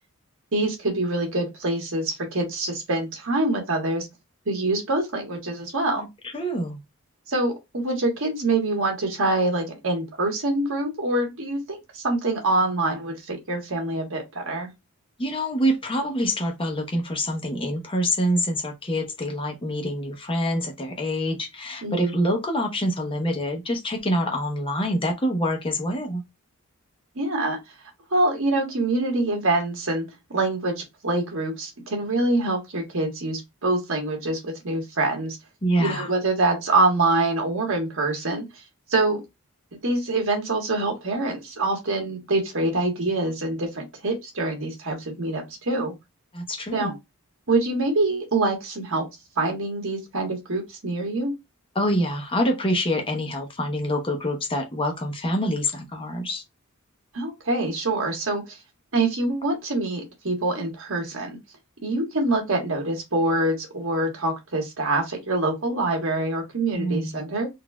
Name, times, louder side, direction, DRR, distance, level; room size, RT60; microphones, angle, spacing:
voice 1, 0.5-4.1 4.5-6.0 7.3-14.7 21.8-22.2 27.1-27.6 28.1-30.0 30.3-35.4 35.8-38.4 38.9-39.2 39.8-45.9 46.7-46.9 47.5-49.1 49.4-51.3 57.1-58.6 58.9-61.3 61.8-67.5, right 2 dB, 65° right, 1.4 m, -25 dB
voice 2, 6.0-6.8 15.2-26.2 35.6-36.1 46.3-46.9 51.7-56.4 66.7-67.2, equal, 25° left, 0.8 m, -26 dB
4.0 x 2.6 x 2.2 m
head